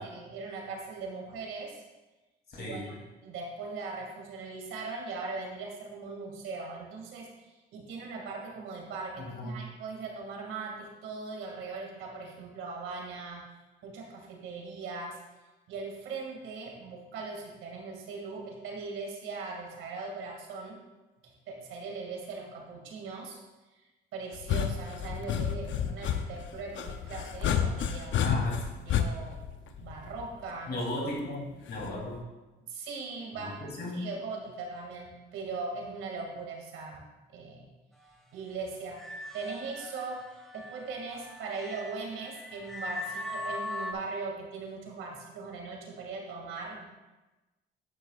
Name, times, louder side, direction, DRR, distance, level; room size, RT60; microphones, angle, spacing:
voice 1, 0.0-1.8 2.6-2.9 3.2-13.5 13.8-15.2 15.7-20.8 21.2-23.4 24.1-28.4 28.8-29.4 29.7-31.2 32.7-33.6 33.9-37.0 37.3-37.7 38.3-39.0 39.3-46.9, right 4 dB, 90° right, 0 dB, 2.2 m, -40 dB
voice 2, 2.5-3.0 9.2-9.6 28.2-28.7 30.7-32.3 33.3-34.0, left 1 dB, 55° left, -2 dB, 2.9 m, -36 dB
sound 1, 24.3-30.4 31.8-32.2, left 8 dB, 70° left, 0.7 m, -30 dB
sound 2, 38.9-43.9, left 1 dB, ahead, 1.7 m, -40 dB
11.0 x 9.5 x 2.4 m, 1.1 s
cardioid pair, 90°, 20 cm